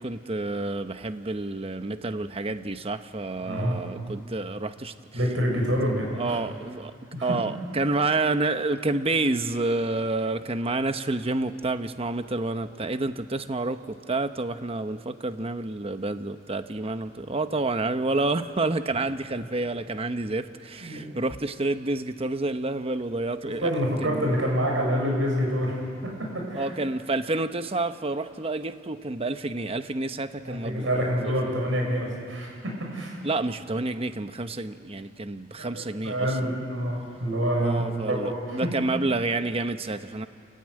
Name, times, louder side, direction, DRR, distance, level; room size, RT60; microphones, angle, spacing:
voice 1, 0.0-4.9 6.1-6.9 7.2-23.7 24.0-24.4 26.5-31.3 33.2-36.6 37.6-40.3, right 2 dB, 30° right, 10 dB, 0.9 m, -29 dB
voice 2, 3.4-3.9 5.1-6.4 7.1-7.3 20.8-21.0 23.4-25.8 26.2-26.7 30.5-33.2 35.6-38.7, equal, 80° right, -1 dB, 7.2 m, -27 dB
29.0 x 15.5 x 9.8 m, 2.5 s
head